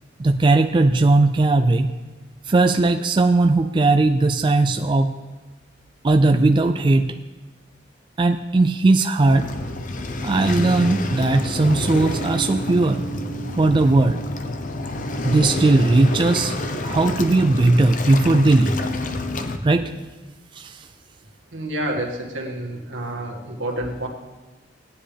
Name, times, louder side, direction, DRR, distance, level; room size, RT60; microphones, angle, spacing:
voice 1, 0.2-1.9 2.5-5.1 6.0-7.1 8.2-9.5 10.2-13.0 13.6-14.2 15.2-16.5 16.8-18.8 19.6-19.9 20.5-20.9, right 2 dB, 25° right, 7 dB, 0.3 m, -18 dB
Waves surf, 9.3-19.6, left 1 dB, 45° left, 0.7 m, -28 dB
voice 2, 21.5-24.1, right 1 dB, 80° right, 0 dB, 1.8 m, -29 dB
17.5 x 9.7 x 3.4 m, 1.2 s
head